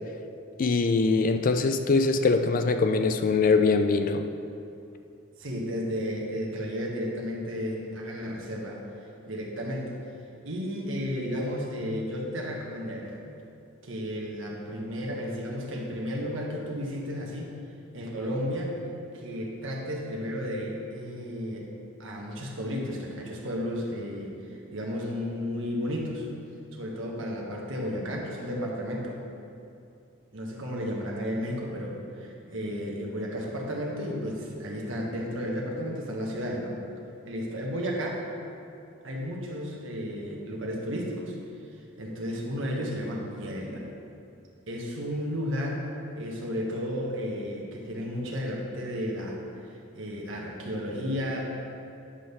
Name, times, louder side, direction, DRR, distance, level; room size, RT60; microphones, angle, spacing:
voice 1, 0.6-4.2, left 4 dB, 40° left, 8 dB, 0.3 m, -23 dB
voice 2, 5.4-8.8 9.3-9.9 10.4-13.3 13.8-17.5 17.9-18.7 19.1-21.7 22.0-24.3 24.7-26.3 26.7-29.2 30.3-36.8 37.2-38.2 39.0-41.4 42.0-43.8 44.7-45.9 46.1-49.4 49.9-51.4, equal, 65° right, -1 dB, 1.4 m, -33 dB
10.0 x 3.8 x 6.7 m, 2.6 s
head